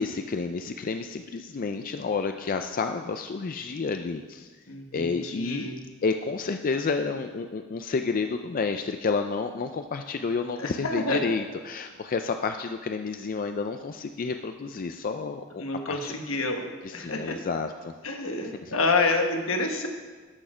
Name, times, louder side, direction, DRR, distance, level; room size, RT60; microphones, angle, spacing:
voice 1, 0.0-4.5 4.9-5.7 6.0-16.1 16.8-17.9 18.6-18.7, left 4 dB, 45° left, 7 dB, 0.4 m, -30 dB
voice 2, 4.7-5.8 10.6-11.4 15.6-17.4 18.0-19.9, left 3 dB, 80° left, 4 dB, 1.3 m, -28 dB
12.5 x 6.4 x 5.0 m, 1.4 s
head